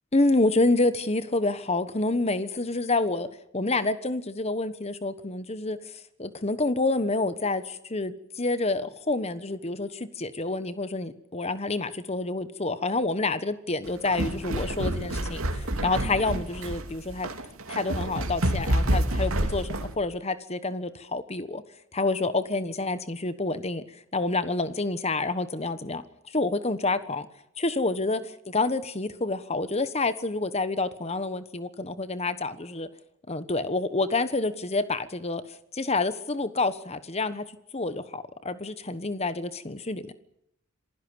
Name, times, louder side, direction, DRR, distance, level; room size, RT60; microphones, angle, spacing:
voice 1, 0.1-3.3 3.5-5.8 6.2-17.3 17.7-21.6 21.9-23.8 24.1-26.0 26.3-27.3 27.6-32.9 33.3-35.4 35.7-37.4 37.7-40.1, left 2 dB, 30° left, 13 dB, 1.2 m, -28 dB
sound 1, 13.9-19.9, right 1 dB, 80° right, 2.7 m, -28 dB
26.5 x 16.5 x 8.0 m, 0.77 s
head